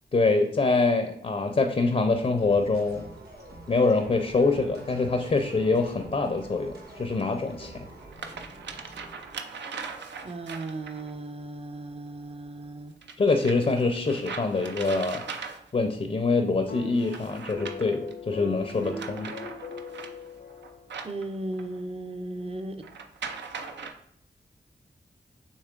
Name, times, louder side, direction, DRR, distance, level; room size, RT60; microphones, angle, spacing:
voice 1, 0.1-3.0 3.7-7.7 13.2-15.2 15.7-19.3, left 3 dB, 40° left, 5 dB, 0.5 m, -25 dB
sound 1, 2.1-9.4, right 2 dB, 60° right, 1.3 m, -47 dB
sound 2, 5.5-5.6 7.2-7.3 7.9-11.1 13.0-15.9 16.9-18.1 18.6-21.8 22.8-23.9, right 5 dB, 80° right, 0.5 m, -40 dB
voice 2, 10.2-12.9 21.0-22.9, right 2 dB, 35° right, 7 dB, 0.6 m, -36 dB
sound 3, 16.7-21.1, left 3 dB, 90° left, 0.8 m, -40 dB
6.5 x 3.1 x 2.4 m, 0.70 s
cardioid pair, 45°, 18 cm